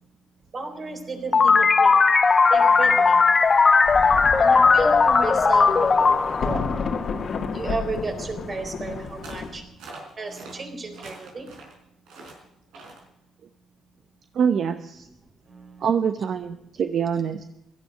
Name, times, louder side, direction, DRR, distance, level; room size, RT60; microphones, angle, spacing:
voice 1, 0.5-2.0 2.5-3.3 4.4-6.6 7.5-9.7 10.2-11.5 15.5-15.8, right 3 dB, 40° right, 5 dB, 4.1 m, -33 dB
sound 1, 1.3-7.6, left 4 dB, 35° left, 1.1 m, -18 dB
Thunder, 3.5-3.6 3.8-9.6, left 5 dB, 60° left, 1.9 m, -32 dB
sound 2, 9.2-9.5 9.8-10.5 10.9-11.7 12.1-12.4 12.7-13.0, right 3 dB, 85° right, 4.8 m, -43 dB
voice 2, 14.3-15.1 15.8-17.4, right 7 dB, 65° right, 9 dB, 0.8 m, -25 dB
16.5 x 13.0 x 6.7 m, 0.86 s
cardioid pair, 85°, 0 cm